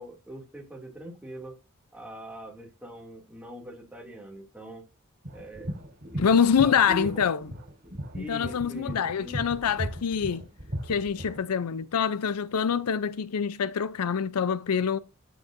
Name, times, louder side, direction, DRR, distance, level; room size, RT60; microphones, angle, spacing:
voice 1, 0.0-1.6 1.9-4.9 5.3-5.7 6.1-7.3 8.1-9.5, right 1 dB, 5° right, 2.4 m, -42 dB
sound 1, 5.2-11.4, right 1 dB, 45° right, 4.1 m, -37 dB
voice 2, 6.2-7.5 8.2-10.5 10.8-15.0, left 7 dB, 85° left, 0.5 m, -25 dB
12.5 x 8.9 x 2.6 m
head